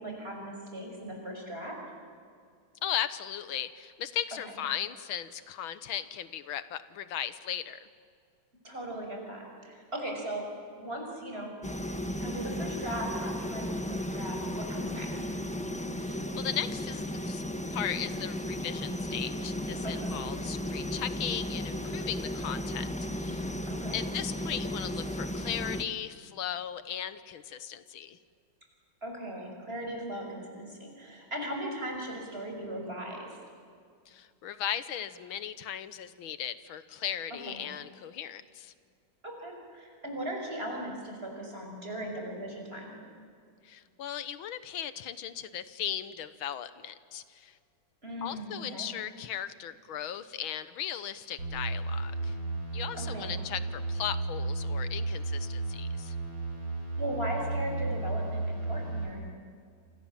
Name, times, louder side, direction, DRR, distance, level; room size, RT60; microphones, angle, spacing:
voice 1, 0.0-1.8 8.6-10.4 10.8-11.5 12.2-15.1 19.8-20.1 23.7-24.0 29.0-33.3 37.5-37.6 39.2-43.0 48.0-48.9 52.9-53.3 57.0-59.3, right 1 dB, 30° right, 1 dB, 6.1 m, -38 dB
voice 2, 2.8-7.8 16.0-17.4 17.7-23.5 23.9-28.2 34.1-38.7 43.6-47.6 48.2-52.4 52.7-56.2, left 10 dB, 85° left, 13 dB, 1.9 m, -37 dB
sound 1, 11.6-25.8, left 1 dB, 5° left, 0.9 m, -35 dB
sound 2, 51.4-59.1, right 2 dB, 85° right, 7.6 m, -33 dB
27.5 x 27.5 x 7.4 m, 2.2 s
omnidirectional pair, 2.2 m